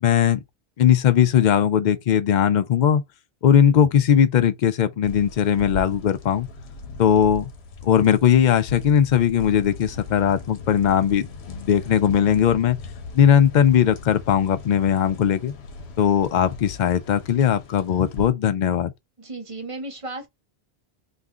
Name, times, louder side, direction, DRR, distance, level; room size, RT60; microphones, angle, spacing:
voice 1, 0.0-0.4 0.8-3.0 3.4-6.5 7.0-7.5 7.8-12.8 13.1-15.5 16.0-18.9, left 9 dB, 55° left, 0.5 m, -19 dB
sound 1, 5.0-18.3, left 3 dB, 80° left, 1.0 m, -38 dB
voice 2, 19.2-20.3, right 2 dB, 35° right, 0.8 m, -34 dB
2.7 x 2.5 x 3.5 m
omnidirectional pair, 1.1 m